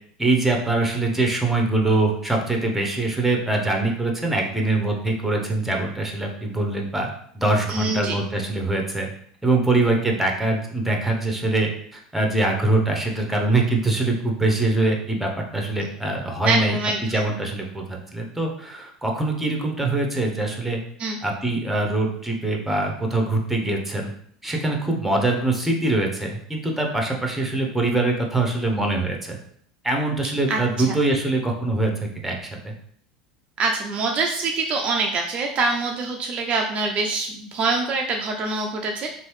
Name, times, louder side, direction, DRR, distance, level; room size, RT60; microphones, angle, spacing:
voice 1, 0.2-7.1 7.3-9.1 9.4-20.8 21.2-24.1 24.4-29.4 29.8-31.9 32.2-32.7, right 2 dB, 5° right, 1 dB, 0.7 m, -23 dB
voice 2, 7.7-8.2 16.4-17.0 21.0-21.2 30.5-30.6 30.9-31.0 33.6-39.1, right 3 dB, 35° right, 2 dB, 0.4 m, -24 dB
3.0 x 2.6 x 3.0 m, 0.63 s
figure-of-eight pair, 75°, 3 cm